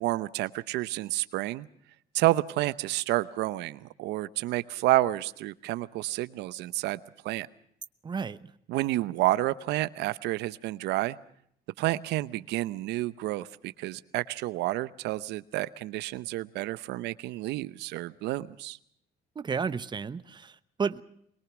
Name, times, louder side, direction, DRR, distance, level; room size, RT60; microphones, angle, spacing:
voice 1, 0.0-1.7 2.1-7.0 7.2-7.5 8.7-11.2 11.8-18.8, right 16 dB, 85° right, 0.8 m, -30 dB
voice 2, 8.0-8.5 19.3-21.0, right 5 dB, 25° right, 1.0 m, -32 dB
23.0 x 21.5 x 6.1 m
cardioid pair, 110°, 17 cm